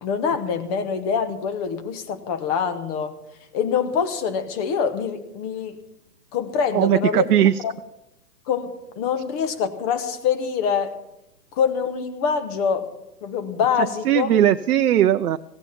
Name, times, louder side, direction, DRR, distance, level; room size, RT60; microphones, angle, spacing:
voice 1, 0.0-3.2 3.5-5.8 6.3-7.3 7.6-7.7 8.5-10.9 11.5-12.9 13.2-14.3, left 7 dB, 25° left, 10 dB, 1.0 m, -25 dB
voice 2, 6.7-7.6 14.0-15.4, right 11 dB, 65° right, 10 dB, 0.6 m, -18 dB
16.0 x 9.0 x 7.2 m, 0.90 s
hypercardioid pair, 130°, 48 cm